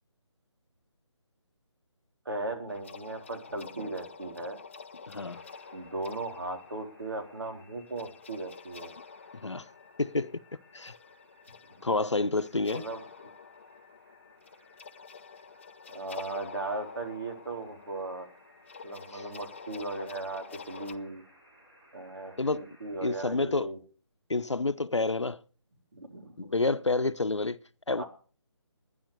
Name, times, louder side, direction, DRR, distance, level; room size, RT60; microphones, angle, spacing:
voice 1, 2.3-4.6 5.7-8.9 12.7-13.3 15.9-18.3 18.8-21.2 21.9-23.8 25.9-26.5 28.0-28.1, right 2 dB, 55° right, 3.7 m, -37 dB
sound 1, 2.7-20.9, left 5 dB, 25° left, 0.6 m, -48 dB
voice 2, 5.1-5.4 9.4-9.7 10.0-10.4 10.7-10.9 11.8-12.9 19.1-19.2 22.4-22.7 23.0-23.7 24.3-25.4 26.4-27.6 27.9-28.0, left 3 dB, 75° left, 0.8 m, -29 dB
sound 2, 5.1-23.3, left 1 dB, 15° right, 5.0 m, -61 dB
12.0 x 10.0 x 6.7 m
figure-of-eight pair, 150°, 15 cm